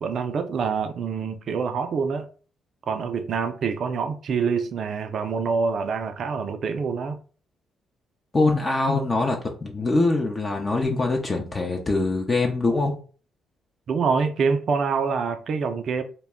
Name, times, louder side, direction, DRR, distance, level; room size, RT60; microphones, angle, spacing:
voice 1, 0.0-2.3 2.9-7.2 13.9-16.0, right 5 dB, 60° right, 0.3 m, -26 dB
voice 2, 8.3-13.0, left 2 dB, 35° left, 0.5 m, -23 dB
2.2 x 2.0 x 3.4 m
hypercardioid pair, 55°, 0 cm